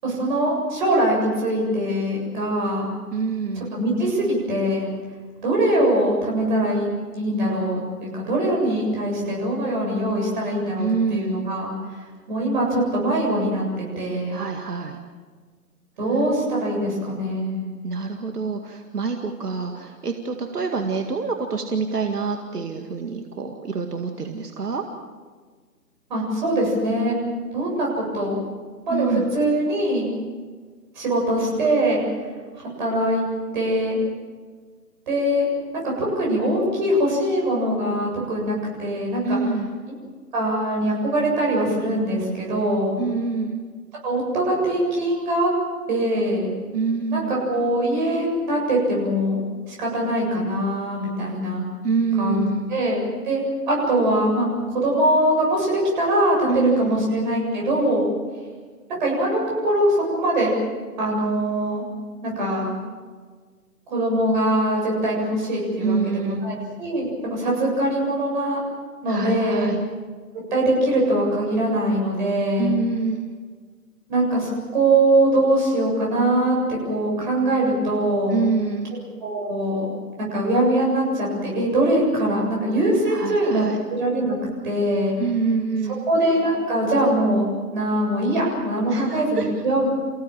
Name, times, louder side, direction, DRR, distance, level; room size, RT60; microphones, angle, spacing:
voice 1, 0.0-2.8 3.6-4.9 5.4-6.9 7.1-11.7 12.3-13.6 14.0-14.4 16.0-17.7 26.1-27.1 27.5-28.4 28.8-30.1 31.0-32.0 32.6-33.2 33.5-34.0 35.1-35.5 36.0-39.4 40.3-43.0 44.0-45.5 45.9-46.5 47.1-49.4 49.7-51.6 52.2-58.1 59.0-60.5 61.0-61.8 62.2-62.7 63.9-68.6 69.0-69.7 70.5-72.7 74.1-76.6 76.9-78.4 79.2-79.8 80.2-83.6 83.9-84.3 84.6-85.2 86.0-89.9, right 1 dB, 30° right, -2 dB, 7.5 m, -22 dB
voice 2, 3.1-3.7 10.8-11.5 14.3-15.0 17.8-24.8 28.9-29.3 39.2-39.7 43.0-43.6 46.7-47.3 51.8-52.7 56.5-57.0 65.8-66.4 69.1-69.8 72.6-73.3 78.3-79.0 83.1-83.8 85.2-86.1 88.9-89.5, right 5 dB, 70° right, 4 dB, 2.2 m, -26 dB
29.0 x 16.5 x 7.6 m, 1.5 s
hypercardioid pair, 170°, 48 cm